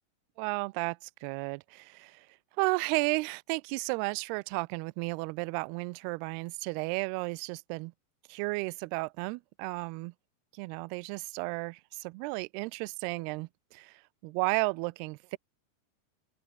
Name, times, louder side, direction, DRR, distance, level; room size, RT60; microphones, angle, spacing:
voice 1, 0.4-2.3 2.6-7.9 8.3-10.1 10.5-15.4, right 27 dB, 90° right, 2.3 m, -33 dB
open air
omnidirectional pair, 5.1 m